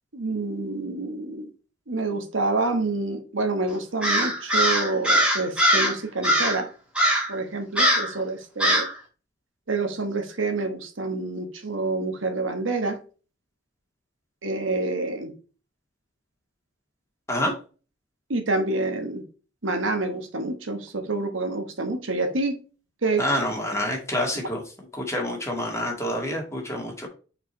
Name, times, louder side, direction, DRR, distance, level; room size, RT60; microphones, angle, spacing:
voice 1, 0.1-1.5 1.9-6.7 7.3-8.9 9.7-13.0 14.4-15.3 18.3-19.2 19.6-22.5 23.0-23.2, right 3 dB, 80° right, 1.3 m, -27 dB
Crow, 4.0-6.0 6.2-6.6 7.0-7.3 7.8-8.1 8.6-8.9, equal, 5° right, 1.7 m, -21 dB
voice 2, 23.2-24.6 24.9-27.1, left 1 dB, 15° left, 1.9 m, -27 dB
4.9 x 4.6 x 4.3 m
head